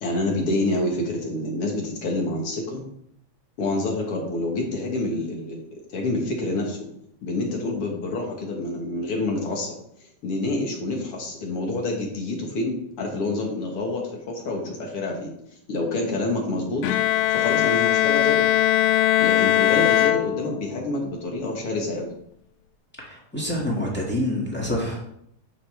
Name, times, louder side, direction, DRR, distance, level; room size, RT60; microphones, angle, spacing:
voice 1, 0.0-2.8 3.6-5.7 5.9-6.8 7.2-9.7 10.2-15.3 15.7-16.8 17.3-18.5 19.2-22.1, left 2 dB, 55° left, 0 dB, 2.2 m, -27 dB
Bowed string instrument, 16.8-20.8, left 13 dB, 80° left, 1.8 m, -20 dB
voice 2, 23.0-25.0, left 1 dB, 5° left, -4 dB, 1.3 m, -27 dB
11.5 x 5.8 x 3.4 m, 0.73 s
omnidirectional pair, 3.4 m